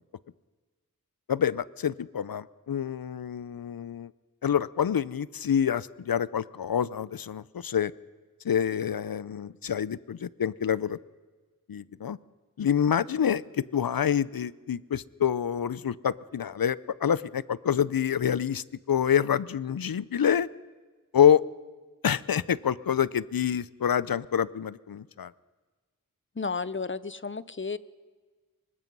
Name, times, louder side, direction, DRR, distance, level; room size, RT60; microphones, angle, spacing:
voice 1, 1.3-4.1 4.4-7.9 8.4-11.0 11.7-12.2 12.6-13.4 13.7-20.5 21.1-21.4 22.0-25.3, left 8 dB, 80° left, 20 dB, 0.6 m, -27 dB
voice 2, 26.4-27.8, left 4 dB, 35° left, 17 dB, 0.8 m, -32 dB
24.0 x 20.5 x 5.4 m, 1.4 s
wide cardioid pair, 45°, 35 cm